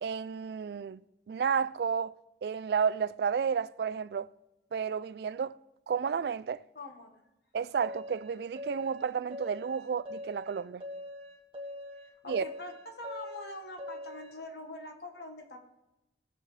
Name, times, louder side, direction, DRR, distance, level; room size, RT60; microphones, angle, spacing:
voice 1, 0.0-1.0 1.3-2.1 2.4-4.3 4.7-5.6 5.9-6.6 7.5-10.8 12.3-12.4, right 6 dB, 65° right, 0.3 m, -31 dB
voice 2, 6.7-7.2 12.0-15.6, left 2 dB, 70° left, 1.3 m, -44 dB
sound 1, 7.8-14.4, left 1 dB, 30° right, 1.8 m, -43 dB
18.5 x 7.3 x 3.3 m
head